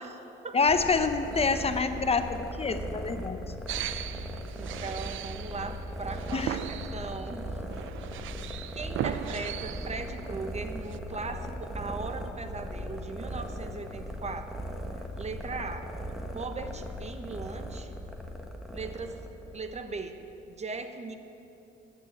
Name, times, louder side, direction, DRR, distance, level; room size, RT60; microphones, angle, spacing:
voice 1, 0.0-0.6 4.0-7.5 8.7-14.5 15.2-15.9 16.3-17.9 18.7-19.1 19.5-20.2 20.5-21.2, right 4 dB, 35° right, 8 dB, 1.0 m, -38 dB
voice 2, 0.5-3.5 6.3-6.6, left 4 dB, 30° left, 8 dB, 0.8 m, -27 dB
sound 1, 0.7-19.9, equal, ahead, 1.4 m, -39 dB
sound 2, 3.7-11.0, right 11 dB, 75° right, 0.5 m, -38 dB
12.0 x 8.6 x 9.0 m, 2.9 s
cardioid pair, 90°, 20 cm